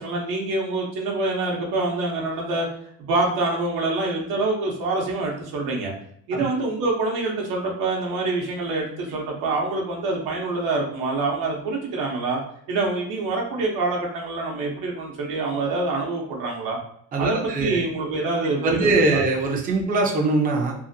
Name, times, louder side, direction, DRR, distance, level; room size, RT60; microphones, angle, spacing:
voice 1, 0.0-2.7 3.0-5.9 6.3-12.4 12.7-16.8 17.2-19.2, right 3 dB, 75° right, -1 dB, 0.8 m, -26 dB
voice 2, 17.1-17.8 18.6-20.8, right 3 dB, 25° right, -1 dB, 0.4 m, -21 dB
2.7 x 2.5 x 2.6 m, 0.67 s
cardioid pair, 180°, 37 cm